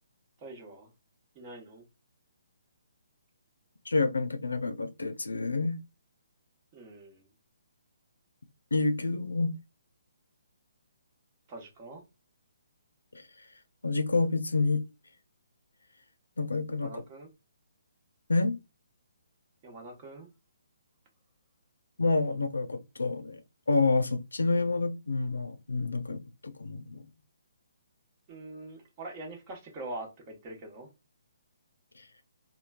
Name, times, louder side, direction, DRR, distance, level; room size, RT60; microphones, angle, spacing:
voice 1, 0.4-0.9 1.3-1.9 6.7-7.3 11.5-12.0 16.8-17.3 19.6-20.3 28.3-30.9, right 2 dB, 30° right, 1.0 m, -44 dB
voice 2, 3.9-5.8 8.7-9.5 13.1-13.5 13.8-14.8 16.4-16.9 18.3-18.6 22.0-23.4 23.7-27.0 32.0-32.1, left 3 dB, 85° left, 0.4 m, -28 dB
3.1 x 2.1 x 2.3 m
figure-of-eight pair, 140°, 0 cm